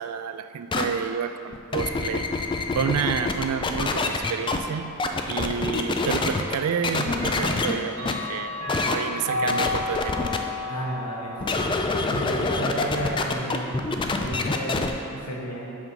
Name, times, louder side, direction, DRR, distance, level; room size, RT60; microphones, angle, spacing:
voice 1, 0.0-2.3 2.7-4.9 5.3-8.5 8.9-10.2 11.0-11.1, right 7 dB, 75° right, 10 dB, 0.3 m, -29 dB
sound 1, 0.7-0.8 1.5-4.6 5.0-6.5 6.8-7.7 8.0-8.1 8.7-9.0 9.5-10.4 11.4-14.9, left 3 dB, 20° left, 0.3 m, -26 dB
Clock, 7.2-13.9, left 2 dB, 60° right, 1.2 m, -33 dB
voice 2, 10.7-11.4 12.0-13.7 14.0-14.8 15.1-15.7, right 1 dB, 90° left, -2 dB, 1.2 m, -32 dB
7.1 x 3.7 x 5.4 m, 2.6 s
head